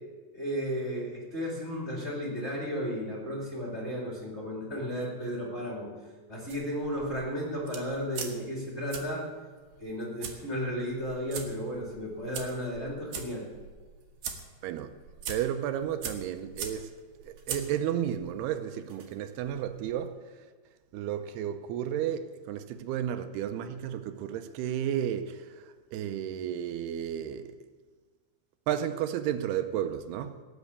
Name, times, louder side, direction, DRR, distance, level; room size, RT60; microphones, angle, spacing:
voice 1, 0.3-5.9 6.3-9.2 9.8-13.5, equal, 20° left, 2.1 m, -34 dB
sound 1, 6.5-20.1, right 6 dB, 65° right, 2.9 m, -43 dB
voice 2, 14.6-14.9 15.3-16.9 17.2-20.5 20.9-27.6 28.7-30.4, right 10 dB, 85° right, 2.7 m, -33 dB
18.5 x 6.2 x 8.2 m
omnidirectional pair, 4.6 m